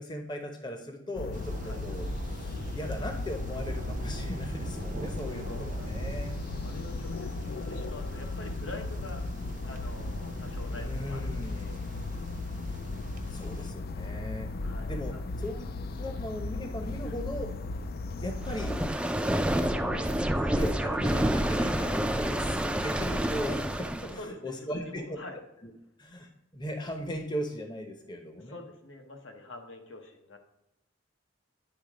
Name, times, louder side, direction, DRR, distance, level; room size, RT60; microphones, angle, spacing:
voice 1, 0.0-6.4 10.8-11.7 13.3-14.5 14.9-15.7 16.0-17.5 18.2-18.8 19.6-25.2 25.6-25.7 26.0-28.6, equal, 25° left, 4 dB, 0.8 m, -38 dB
sound 1, 1.1-18.9, left 2 dB, 55° left, 0.4 m, -36 dB
sound 2, 1.3-13.7, right 1 dB, 45° right, 0.6 m, -41 dB
voice 2, 4.9-9.2 9.6-11.8 14.6-15.2 15.5-15.7 24.0-25.4 28.4-30.4, left 2 dB, 80° left, 3 dB, 1.3 m, -46 dB
sound 3, 18.4-24.2, right 1 dB, 5° right, 0.4 m, -28 dB
9.9 x 3.6 x 5.0 m, 0.89 s
head